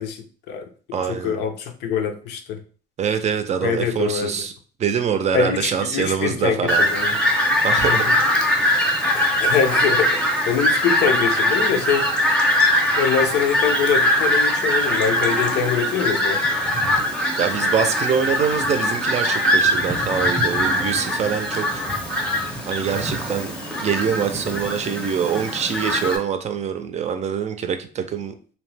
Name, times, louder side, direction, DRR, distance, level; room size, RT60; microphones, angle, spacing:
voice 1, 0.0-2.6 3.6-4.4 5.3-7.2 7.9-8.1 9.1-12.1 13.0-16.4, left 7 dB, 80° left, 6 dB, 0.6 m, -24 dB
voice 2, 0.9-1.4 3.0-4.5 4.8-6.9 7.6-8.0 8.6-8.9 17.3-21.8 22.7-23.5 23.8-28.3, right 7 dB, 40° right, 7 dB, 0.5 m, -24 dB
Fowl, 6.7-26.2, left 1 dB, 5° left, 0.7 m, -21 dB
2.9 x 2.0 x 3.2 m, 0.40 s
cardioid pair, 110°, 17 cm